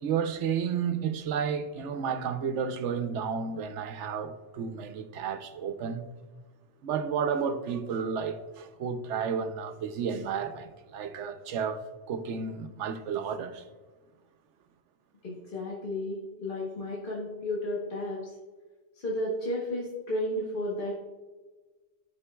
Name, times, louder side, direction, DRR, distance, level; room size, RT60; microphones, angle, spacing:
voice 1, 0.0-6.0 6.8-13.6, right 6 dB, 85° right, 1.0 m, -32 dB
voice 2, 15.2-18.3 18.9-21.0, left 1 dB, 50° left, 1.3 m, -33 dB
13.0 x 5.1 x 2.3 m
omnidirectional pair, 1.2 m